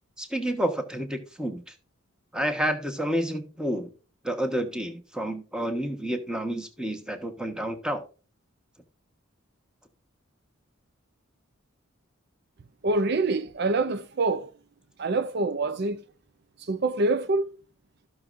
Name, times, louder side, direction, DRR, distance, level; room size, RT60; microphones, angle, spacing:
voice 1, 0.2-1.6 2.3-3.9 4.2-8.0, right 1 dB, 5° right, 1.3 m, -29 dB
voice 2, 12.8-14.5 15.0-16.0 16.6-17.5, right 3 dB, 50° right, 0.5 m, -25 dB
15.5 x 6.3 x 2.6 m
head